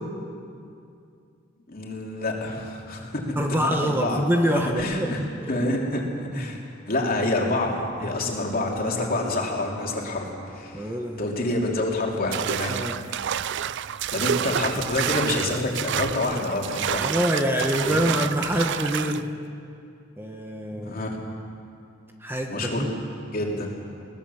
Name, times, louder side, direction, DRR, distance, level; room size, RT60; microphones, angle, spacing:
voice 1, 1.7-4.2 4.7-5.2 5.5-6.0 6.3-6.6 6.9-10.9 11.2-12.7 14.1-17.0 17.8-18.0 20.7-21.2 22.4-22.9 23.3-23.7, left 2 dB, 45° left, -1 dB, 3.1 m, -27 dB
voice 2, 3.4-5.7 6.4-6.6 10.7-11.2 12.7-12.9 17.0-19.3 20.2-21.0 22.2-22.9, equal, 10° right, 2 dB, 1.2 m, -26 dB
sound 1, 8.8-13.8 14.5-14.6 14.9-15.0, right 1 dB, 80° right, 7.3 m, -48 dB
sound 2, 12.3-19.2, right 9 dB, 60° right, 0.4 m, -29 dB
21.5 x 18.5 x 7.1 m, 2.5 s
head